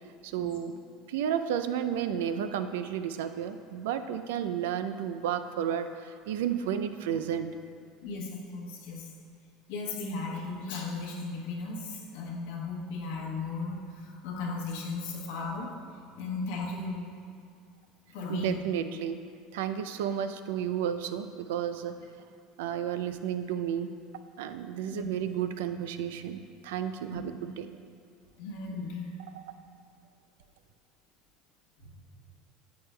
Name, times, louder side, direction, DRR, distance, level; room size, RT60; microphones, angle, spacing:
voice 1, 0.2-0.8 1.1-7.5 18.3-19.2 19.5-22.0 22.6-23.9 24.4-27.7, right 9 dB, 80° right, 9 dB, 0.4 m, -32 dB
voice 2, 8.0-9.1 9.7-15.7 16.2-17.0 18.1-18.6 24.9-25.1 27.1-27.2 28.4-29.2 31.8-31.9, left 3 dB, 75° left, -1 dB, 1.2 m, -36 dB
9.4 x 7.9 x 2.2 m, 2.2 s
hypercardioid pair, 85°, 0 cm